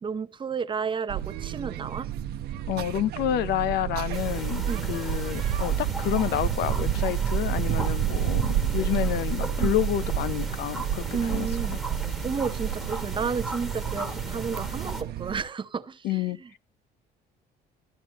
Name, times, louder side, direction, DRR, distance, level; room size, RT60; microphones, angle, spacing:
voice 1, 0.0-2.1 4.7-4.9 9.6-9.8 11.1-11.8 12.2-16.5, right 6 dB, 30° right, 0.7 m, -32 dB
sound 1, 1.1-15.4, right 10 dB, 70° right, 0.8 m, -30 dB
voice 2, 2.7-11.5 11.7-11.8 16.0-16.4, left 12 dB, 75° left, 0.6 m, -29 dB
sound 2, 4.1-15.0, equal, ahead, 1.5 m, -37 dB
13.0 x 11.5 x 2.9 m
cardioid pair, 110°, 17 cm